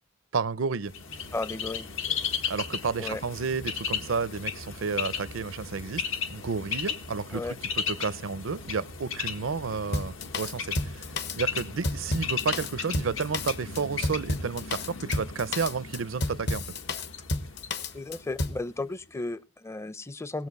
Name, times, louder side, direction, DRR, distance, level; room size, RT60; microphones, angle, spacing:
voice 1, 0.3-0.9 2.5-6.0 6.3-11.0 11.4-16.6, right 5 dB, 75° right, 0.6 m, -31 dB
Bird, 0.9-18.6, left 6 dB, 80° left, 1.5 m, -36 dB
voice 2, 1.3-1.9 3.0-3.2 7.3-7.5 17.9-20.5, left 2 dB, 15° left, 0.5 m, -34 dB
Drum kit, 9.9-18.6, left 2 dB, 55° left, 1.1 m, -31 dB
19.0 x 7.6 x 5.3 m
head